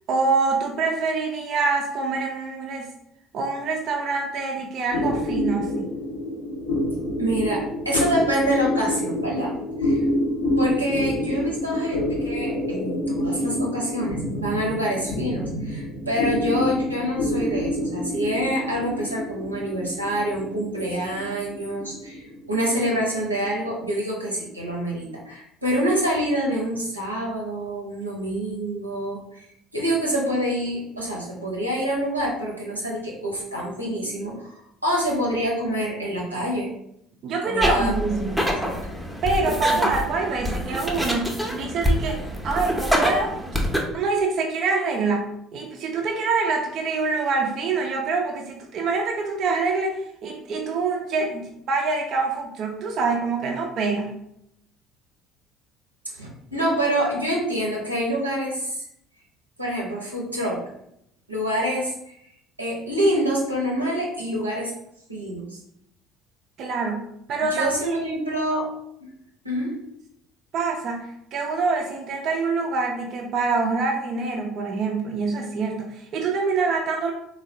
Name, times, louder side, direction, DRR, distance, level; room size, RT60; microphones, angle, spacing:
voice 1, 0.1-2.9 3.3-5.9 37.2-38.3 39.2-43.3 43.9-54.2 66.6-68.0 70.5-77.1, right 4 dB, 45° right, 1 dB, 0.4 m, -25 dB
sound 1, 4.9-23.7, left 1 dB, 65° left, 0.5 m, -27 dB
voice 2, 7.2-9.5 9.8-10.0 10.6-29.5 29.7-36.7 37.4-38.1 38.6-38.7 39.7-40.0 56.1-58.8 59.6-60.6 61.3-62.2 62.6-64.7 65.1-65.6 67.5-68.7 69.4-69.8, equal, 90° right, -3 dB, 0.6 m, -26 dB
sound 2, 37.6-43.8, equal, ahead, 0.6 m, -25 dB
3.3 x 2.2 x 2.6 m, 0.76 s
figure-of-eight pair, 60°, 0 cm